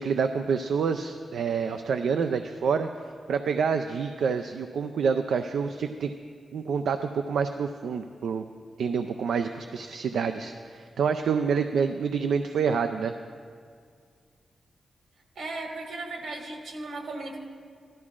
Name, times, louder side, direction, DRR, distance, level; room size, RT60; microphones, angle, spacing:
voice 1, 0.0-2.9 3.3-6.1 6.5-8.4 8.8-13.1, right 6 dB, 80° right, 7 dB, 0.4 m, -27 dB
voice 2, 15.3-17.4, right 2 dB, 65° right, 1 dB, 1.8 m, -36 dB
16.5 x 13.0 x 2.4 m, 2.1 s
wide cardioid pair, 170°, 0 cm